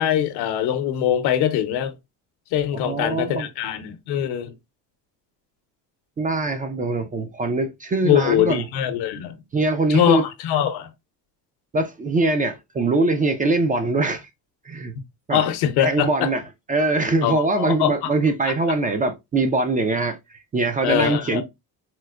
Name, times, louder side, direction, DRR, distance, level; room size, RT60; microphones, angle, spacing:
voice 1, 0.0-1.9 2.5-4.5 8.0-9.4 9.9-10.9 15.3-16.3 17.2-18.1 18.5-18.6 20.8-21.4, left 10 dB, 75° left, 0.7 m, -22 dB
voice 2, 2.7-3.5 6.2-8.6 9.5-10.2 11.7-14.3 14.7-14.9 15.3-15.4 15.8-16.4 16.7-21.4, right 2 dB, 20° right, 0.3 m, -22 dB
4.3 x 2.0 x 2.3 m
cardioid pair, 120°, 40 cm